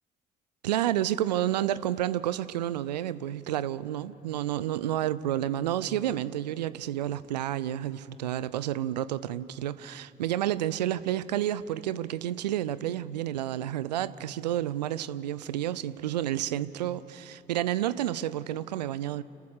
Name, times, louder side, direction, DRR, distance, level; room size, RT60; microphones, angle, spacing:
voice 1, 0.6-19.2, right 12 dB, 80° right, 17 dB, 0.5 m, -30 dB
30.0 x 13.5 x 6.6 m, 2.7 s
figure-of-eight pair, 45°, 21 cm